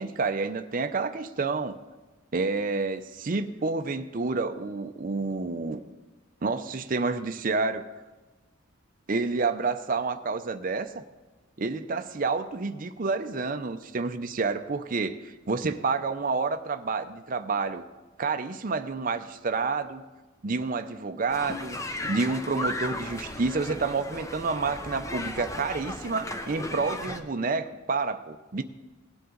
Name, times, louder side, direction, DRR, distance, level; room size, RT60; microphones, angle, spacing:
voice 1, 0.0-1.8 2.3-5.8 6.4-7.9 9.1-11.0 11.6-17.8 18.2-20.0 20.4-21.8 22.1-28.6, right 4 dB, 40° right, 8 dB, 0.5 m, -29 dB
sound 1, 21.3-27.2, left 2 dB, 15° left, 0.6 m, -35 dB
18.5 x 9.6 x 3.8 m, 1.2 s
head